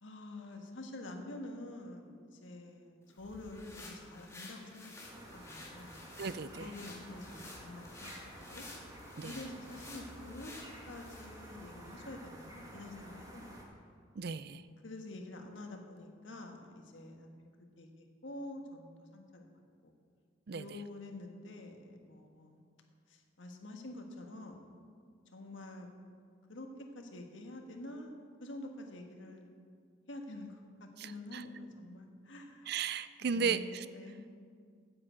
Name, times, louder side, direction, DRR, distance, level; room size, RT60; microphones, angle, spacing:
voice 1, 0.0-4.9 5.3-6.0 6.6-8.1 8.5-8.7 9.2-10.5 10.9-13.5 14.8-17.5 17.8-19.5 19.8-19.9 20.5-22.6 23.1-24.7 25.3-25.9 26.5-28.1 28.4-29.5 30.1-32.7 33.2-34.2, left 1 dB, 75° left, 3 dB, 1.5 m, -47 dB
sound 1, 3.1-11.3, left 2 dB, 15° left, 1.7 m, -52 dB
sound 2, 5.0-13.6, right 1 dB, 20° right, 1.8 m, -51 dB
voice 2, 6.2-6.7 9.2-9.3 14.2-14.6 20.5-20.6 31.0-31.4 32.7-33.8, right 6 dB, 55° right, 14 dB, 0.4 m, -35 dB
9.6 x 8.9 x 8.0 m, 2.1 s
head